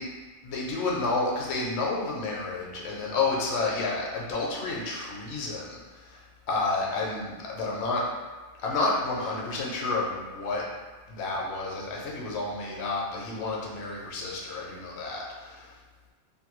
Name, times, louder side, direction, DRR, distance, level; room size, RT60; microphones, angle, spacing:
voice 1, 0.4-8.1 8.6-10.6 11.1-15.7, left 3 dB, 70° left, -3 dB, 0.9 m, -30 dB
2.7 x 2.2 x 3.0 m, 1.3 s
omnidirectional pair, 1.2 m